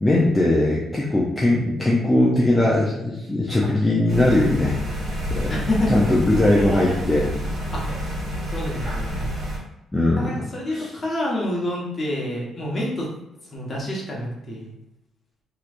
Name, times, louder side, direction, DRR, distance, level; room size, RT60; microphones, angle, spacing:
voice 1, 0.0-5.0 5.3-5.6 5.9-7.3 9.9-10.3 10.7-10.9, left 1 dB, 15° left, -5 dB, 0.6 m, -20 dB
sound 1, 4.1-9.6, equal, 60° right, 1.5 m, -28 dB
voice 2, 5.4-5.9 7.7-8.0 8.5-9.2 10.2-13.1 13.5-14.7, left 1 dB, 35° left, -4 dB, 1.2 m, -28 dB
3.1 x 3.0 x 2.5 m, 0.90 s
cardioid pair, 90°, 0 cm